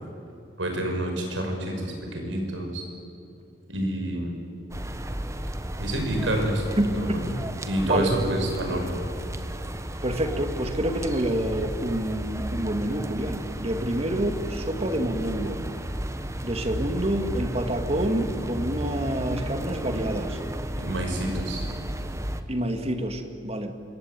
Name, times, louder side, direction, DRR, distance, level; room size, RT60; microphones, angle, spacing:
voice 1, 0.6-2.8 3.7-4.4 5.8-7.2 7.6-8.9 20.8-21.6, right 1 dB, 85° right, 3 dB, 6.3 m, -28 dB
sound 1, 4.7-22.4, right 1 dB, 15° right, 1.3 m, -33 dB
voice 2, 10.0-15.6 16.4-20.4 22.5-23.7, right 1 dB, 35° right, 6 dB, 2.4 m, -27 dB
26.0 x 22.5 x 9.5 m, 2.5 s
head